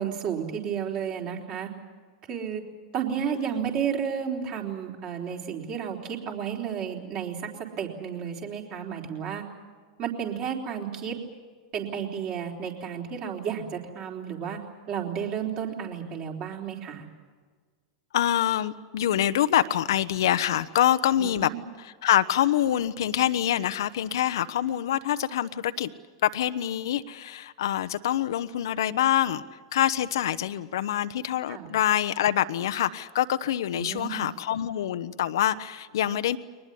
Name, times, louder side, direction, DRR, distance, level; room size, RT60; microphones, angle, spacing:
voice 1, 0.0-1.7 2.3-2.6 2.9-7.5 7.8-9.4 10.0-11.2 11.7-14.6 14.9-17.1 21.2-21.6 31.5-31.7 33.7-34.2, right 8 dB, 40° right, 0 dB, 3.9 m, -32 dB
voice 2, 18.1-21.5 21.8-25.9 26.2-29.4 29.7-36.4, left 11 dB, 65° left, 12 dB, 0.8 m, -25 dB
22.5 x 19.5 x 10.0 m, 1.5 s
figure-of-eight pair, 90°, 2 cm